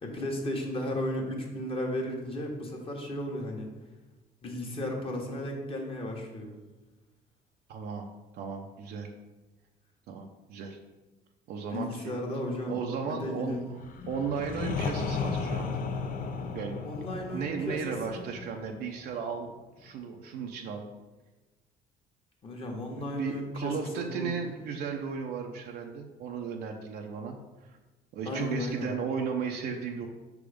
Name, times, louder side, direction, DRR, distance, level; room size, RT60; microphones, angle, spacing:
voice 1, 0.0-3.7 4.4-6.5 11.7-13.6 16.8-18.3 22.4-24.3 28.2-28.9, left 1 dB, 35° left, 0 dB, 1.3 m, -35 dB
voice 2, 7.7-8.1 8.3-9.1 10.1-10.8 11.5-12.1 12.6-13.8 14.0-15.8 16.5-16.8 17.3-19.5 19.8-20.8 23.0-27.4 28.1-30.1, right 6 dB, 70° right, 2 dB, 0.7 m, -35 dB
sound 1, 13.8-19.5, left 5 dB, 55° left, 0.7 m, -35 dB
5.8 x 3.6 x 5.0 m, 1.2 s
cardioid pair, 110°, 17 cm